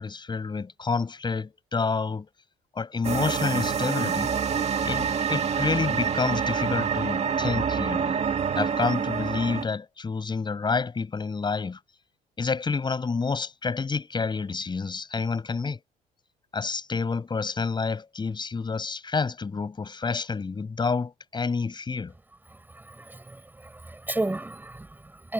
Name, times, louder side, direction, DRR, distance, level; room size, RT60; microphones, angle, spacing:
voice 1, 0.0-2.3 2.7-4.3 4.8-8.2 8.5-11.8 12.4-15.8 16.5-22.1, left 4 dB, 25° left, 7.2 m, -29 dB
sound 1, 3.0-9.7, right 7 dB, 40° right, 2.2 m, -27 dB
voice 2, 22.5-25.3, right 2 dB, 10° right, 6.8 m, -34 dB
cardioid pair, 110°, 17 cm